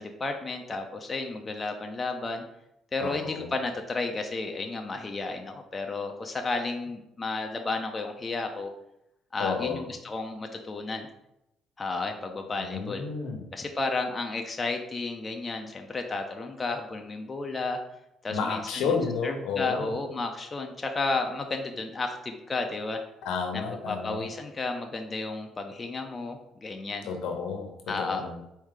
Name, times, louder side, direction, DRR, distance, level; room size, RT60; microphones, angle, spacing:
voice 1, 0.0-2.4 2.9-8.7 9.3-11.1 11.8-13.0 13.5-17.8 18.2-19.0 19.2-23.0 23.5-27.1 27.9-28.3, left 3 dB, 25° left, 4 dB, 0.5 m, -32 dB
voice 2, 3.0-3.5 9.4-9.8 12.6-13.4 18.3-19.9 23.2-24.3 27.1-27.7 28.0-28.4, left 5 dB, 85° left, 4 dB, 0.8 m, -31 dB
4.6 x 2.7 x 3.7 m, 0.84 s
cardioid pair, 100°, 0 cm